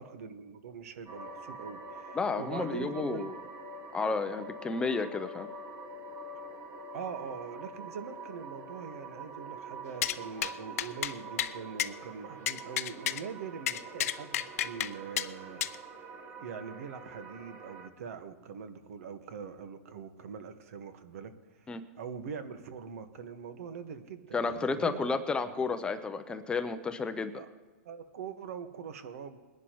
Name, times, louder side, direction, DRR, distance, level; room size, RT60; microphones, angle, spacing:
voice 1, 0.0-3.4 6.9-15.6 16.4-21.7 22.0-25.1 27.3-27.5 27.8-29.4, right 6 dB, 70° right, 9 dB, 1.5 m, -43 dB
sound 1, 1.1-17.9, right 2 dB, 35° right, 1.3 m, -45 dB
voice 2, 2.1-3.3 3.9-5.5 21.7-21.8 24.3-27.4, left 4 dB, 10° left, 9 dB, 0.5 m, -32 dB
sound 2, 10.0-10.2 10.4-10.5 10.8-11.1 11.4-11.5 11.8-11.9 12.5-13.2 13.7-14.9 15.2-15.3 15.6-15.8, left 12 dB, 70° left, 0.6 m, -31 dB
22.0 x 11.0 x 3.1 m, 1.3 s
hypercardioid pair, 150°, 8 cm